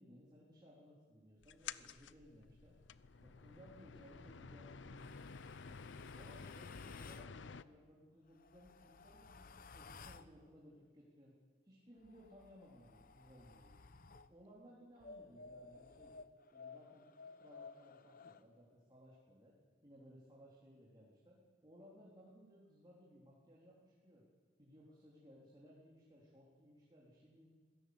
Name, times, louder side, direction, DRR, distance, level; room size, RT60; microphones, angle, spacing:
voice 1, 0.0-2.8 3.2-5.1 5.6-11.4 11.6-13.7 14.3-16.2 16.5-19.5 19.8-24.2 24.6-27.5, equal, 25° right, -5 dB, 3.8 m, -61 dB
sound 1, 1.4-7.6, left 5 dB, 75° left, 0.7 m, -52 dB
sound 2, 4.9-7.3 8.3-10.3 12.0-14.3 15.0-18.4, left 4 dB, 50° left, 0.9 m, -56 dB
25.0 x 17.5 x 8.1 m, 1.5 s
head